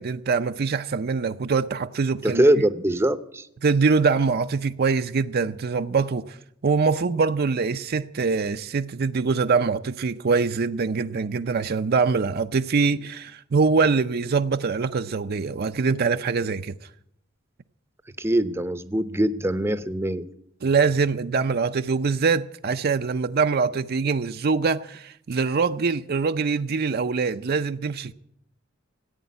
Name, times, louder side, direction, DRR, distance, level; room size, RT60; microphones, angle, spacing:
voice 1, 0.0-2.5 3.6-6.4 6.6-16.8 20.6-28.1, right 4 dB, 50° right, 0.5 m, -23 dB
voice 2, 2.2-3.5 18.2-20.2, right 1 dB, 10° right, 0.7 m, -22 dB
15.0 x 8.9 x 9.4 m
head